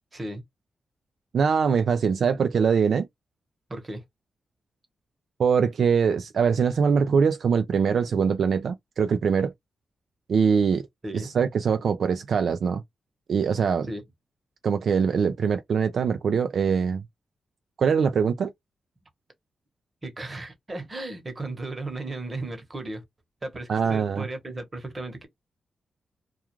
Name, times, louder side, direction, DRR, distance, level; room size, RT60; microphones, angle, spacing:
voice 1, 0.1-0.4 3.7-4.0 11.0-11.3 13.9-14.0 20.0-23.0 23.4-25.3, right 2 dB, 30° right, 1.0 m, -35 dB
voice 2, 1.3-3.1 5.4-9.5 10.3-10.9 11.1-12.8 13.3-13.9 14.6-17.0 17.8-18.5 23.7-24.2, right 6 dB, 70° right, 0.3 m, -23 dB
2.3 x 2.3 x 2.9 m
cardioid pair, 90°, 0 cm